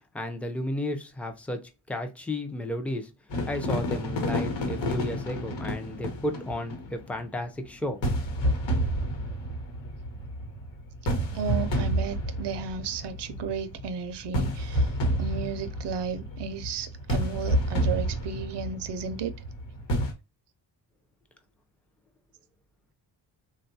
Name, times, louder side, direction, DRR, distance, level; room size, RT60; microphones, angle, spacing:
voice 1, 0.1-1.6 1.9-3.1 3.5-8.0, left 1 dB, 5° left, 0.4 m, -33 dB
sound 1, 3.3-7.2 8.0-20.1, equal, 85° left, 1.1 m, -30 dB
voice 2, 11.3-14.9 15.2-19.3, right 5 dB, 65° right, 0.5 m, -33 dB
3.5 x 2.3 x 2.6 m
wide cardioid pair, 125°, 44 cm